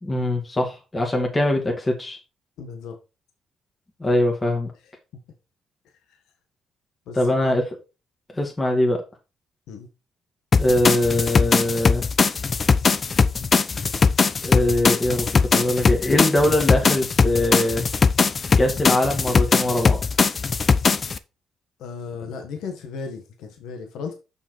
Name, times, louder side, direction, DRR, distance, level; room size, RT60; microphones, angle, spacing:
voice 1, 0.0-2.2 4.0-4.7 7.1-7.6 8.3-9.0 10.6-12.0 14.4-17.8 18.6-20.0, left 1 dB, 20° left, 2.0 m, -22 dB
voice 2, 2.6-3.0 6.1-6.2 7.1-7.5 9.7-9.9 21.8-24.1, left 5 dB, 85° left, 1.5 m, -35 dB
sound 1, 10.5-21.2, left 5 dB, 40° left, 0.7 m, -20 dB
6.7 x 5.7 x 4.5 m
cardioid pair, 90°, 0 cm